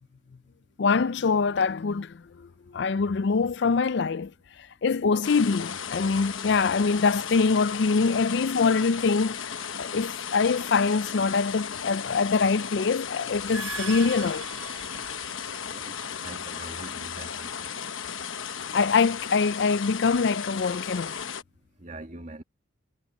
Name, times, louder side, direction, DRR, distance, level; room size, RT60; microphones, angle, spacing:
voice 1, 0.8-4.3 4.8-9.5 9.8-14.4 18.7-21.2, left 4 dB, 55° left, 0.4 m, -24 dB
sound 1, 5.2-21.4, left 7 dB, 70° left, 1.1 m, -35 dB
sound 2, 13.3-15.6, right 3 dB, 65° right, 1.5 m, -39 dB
voice 2, 15.7-17.5 21.8-22.4, right 2 dB, 35° right, 2.3 m, -43 dB
head